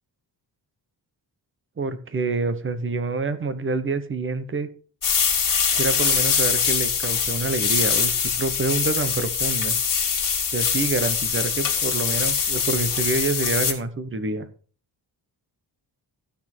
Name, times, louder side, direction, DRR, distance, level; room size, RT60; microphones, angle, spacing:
voice 1, 1.8-4.7 5.7-9.8 10.5-14.5, right 3 dB, 30° right, 11 dB, 1.0 m, -27 dB
sound 1, 5.0-13.7, left 6 dB, 50° left, 2.1 m, -23 dB
13.0 x 6.2 x 4.4 m, 0.41 s
wide cardioid pair, 165°, 41 cm